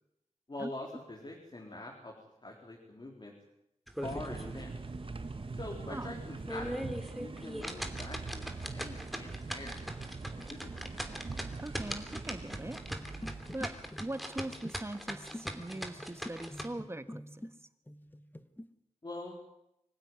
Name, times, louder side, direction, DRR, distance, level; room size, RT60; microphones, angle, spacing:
voice 1, 0.5-2.1 2.4-3.3 4.0-4.7 5.5-10.8 19.0-19.4, left 2 dB, 40° left, -1 dB, 4.1 m, -45 dB
sound 1, 3.9-4.6 5.0-5.1 5.6-5.7 6.3-16.7, equal, ahead, 2.9 m, -41 dB
sound 2, 4.0-13.9, right 3 dB, 45° right, 1.3 m, -43 dB
voice 2, 11.6-12.8 13.5-13.7 14.0-17.4, right 1 dB, 20° right, 10 dB, 1.6 m, -41 dB
sound 3, 12.9-17.6 17.9-18.7, left 1 dB, 15° left, 1.3 m, -48 dB
25.5 x 15.5 x 9.6 m, 0.83 s
wide cardioid pair, 90°, 12 cm